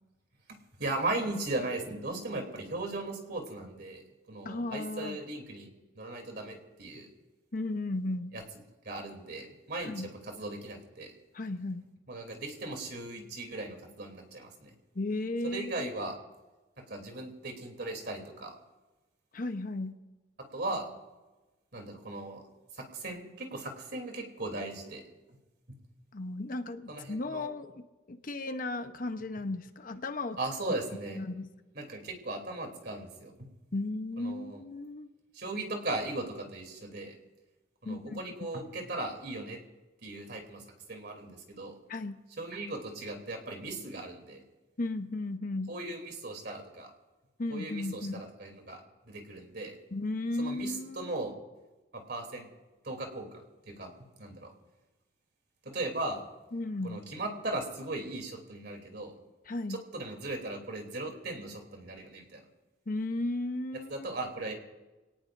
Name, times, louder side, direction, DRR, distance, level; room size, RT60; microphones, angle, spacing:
voice 1, 0.8-5.7 5.9-7.1 8.3-8.4 8.8-9.9 10.3-11.1 12.1-14.7 15.4-16.2 16.8-18.6 20.5-20.9 21.7-22.4 22.7-25.0 26.9-27.5 30.4-31.2 31.7-33.5 34.2-34.6 35.3-37.2 37.8-39.6 40.0-41.8 42.4-44.4 45.7-46.9 47.5-49.7 50.4-51.3 51.9-52.5 52.8-53.9 54.2-54.5 55.6-56.2 56.8-59.1 59.7-62.4 63.9-64.5, right 2 dB, 60° right, 3 dB, 3.1 m, -38 dB
voice 2, 4.4-5.2 7.5-8.3 9.8-10.1 11.3-11.9 14.9-15.9 19.3-20.0 26.1-30.4 30.6-30.7 31.1-31.4 33.7-35.1 37.8-38.2 41.9-42.2 44.8-45.7 47.4-48.2 49.9-51.2 56.5-57.0 59.5-59.8 62.9-64.1, left 2 dB, 45° left, 8 dB, 0.8 m, -35 dB
25.5 x 18.0 x 2.6 m, 1.1 s
head